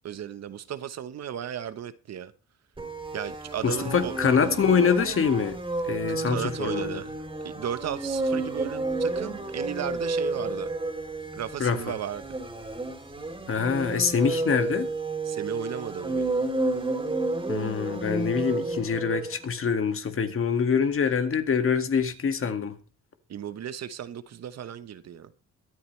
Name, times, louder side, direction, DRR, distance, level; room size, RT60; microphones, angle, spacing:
voice 1, 0.0-2.3 3.1-4.2 6.3-10.7 11.3-12.3 15.2-16.3 23.3-25.3, right 9 dB, 60° right, 1.1 m, -35 dB
sound 1, 2.8-19.4, right 2 dB, 15° right, 3.4 m, -31 dB
voice 2, 3.6-5.6 5.9-7.0 11.6-11.8 13.5-14.9 17.5-22.7, left 6 dB, 45° left, 2.0 m, -25 dB
23.0 x 8.8 x 3.2 m
cardioid pair, 90°, 30 cm